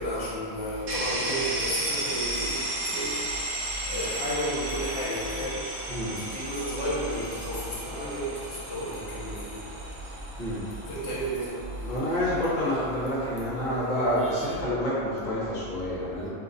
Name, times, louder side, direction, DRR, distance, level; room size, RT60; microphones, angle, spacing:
voice 1, 0.0-2.6 2.9-3.2 3.9-5.6 6.2-9.6 10.9-11.5, equal, 60° left, -7 dB, 1.1 m, -32 dB
sound 1, 0.9-14.6, right 1 dB, 70° right, 1.0 m, -35 dB
voice 2, 5.9-6.2 10.4-10.6 11.8-16.3, equal, 35° left, -8 dB, 1.0 m, -28 dB
2.7 x 2.3 x 3.9 m, 2.2 s
omnidirectional pair, 1.4 m